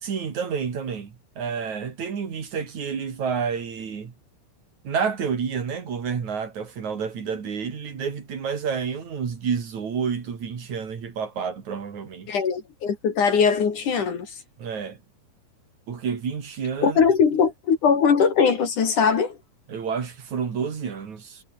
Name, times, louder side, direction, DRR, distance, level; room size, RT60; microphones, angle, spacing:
voice 1, 0.0-4.1 4.8-12.4 14.6-15.0 15.9-17.0 19.7-21.4, right 6 dB, 45° right, 4.0 m, -29 dB
voice 2, 12.3-14.3 16.8-19.4, left 6 dB, 50° left, 3.8 m, -21 dB
omnidirectional pair, 5.1 m